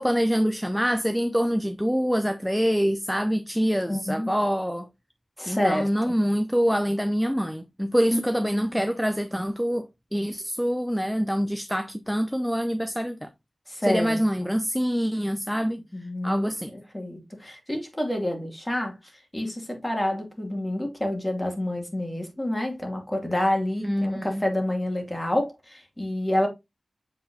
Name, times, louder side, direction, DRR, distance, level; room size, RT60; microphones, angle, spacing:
voice 1, 0.0-4.9 5.5-9.9 10.1-13.3 13.8-15.8 16.2-16.7 23.8-24.4, equal, ahead, 0.6 m, -25 dB
voice 2, 3.9-4.3 5.4-6.1 8.1-8.7 13.7-14.5 15.6-19.0 19.3-26.5, left 1 dB, 20° left, 2.5 m, -28 dB
7.5 x 4.6 x 2.8 m
cardioid pair, 55°, 0 cm